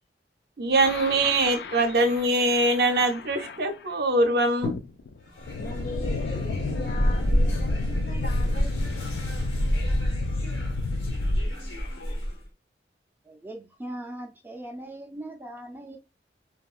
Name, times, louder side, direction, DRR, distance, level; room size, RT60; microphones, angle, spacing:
voice 1, 0.6-4.8, right 2 dB, 60° right, 0.6 m, -23 dB
sound 1, 0.8-3.9 4.6-11.4, left 3 dB, 70° left, 0.3 m, -32 dB
sound 2, 5.3-12.4, equal, 90° left, 1.1 m, -28 dB
voice 2, 5.6-9.2, left 2 dB, 50° left, 0.7 m, -41 dB
voice 3, 13.3-16.0, right 1 dB, 10° right, 0.3 m, -39 dB
2.8 x 2.2 x 2.3 m
head